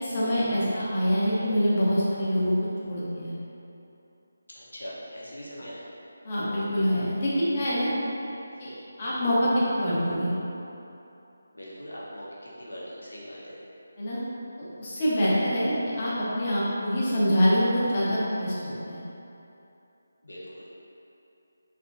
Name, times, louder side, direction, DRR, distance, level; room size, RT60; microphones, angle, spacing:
voice 1, 0.0-2.6 2.9-3.3 6.2-7.9 8.6-8.7 9.0-10.3 14.0-14.2 14.6-19.0, equal, 35° left, -9 dB, 1.0 m, -25 dB
voice 2, 4.5-5.9 7.9-8.0 11.5-12.3 12.6-13.6 20.2-20.6, equal, 90° left, -7 dB, 0.9 m, -41 dB
3.5 x 3.4 x 2.6 m, 2.9 s
figure-of-eight pair, 160°, 0 cm